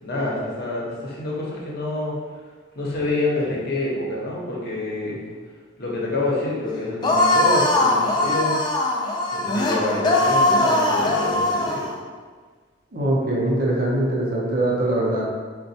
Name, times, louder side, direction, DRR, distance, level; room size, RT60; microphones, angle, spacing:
voice 1, 0.0-2.2 2.7-5.2 5.8-8.6 9.3-11.9, left 2 dB, 55° left, -4 dB, 0.8 m, -27 dB
sound 1, 7.0-11.9, left 2 dB, 25° left, 0.3 m, -20 dB
voice 2, 12.9-15.2, right 1 dB, 50° right, -4 dB, 0.7 m, -22 dB
4.1 x 2.2 x 2.7 m, 1.5 s
head